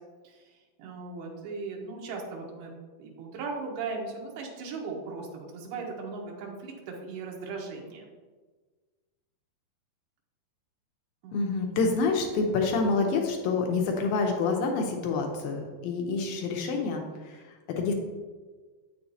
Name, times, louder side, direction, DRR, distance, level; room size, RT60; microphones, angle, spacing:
voice 1, 0.8-2.7 3.0-8.1 11.2-11.4, right 4 dB, 80° right, -1 dB, 2.9 m, -38 dB
voice 2, 11.3-17.9, left 4 dB, 80° left, 2 dB, 2.2 m, -27 dB
8.2 x 7.0 x 2.7 m, 1.4 s
omnidirectional pair, 4.5 m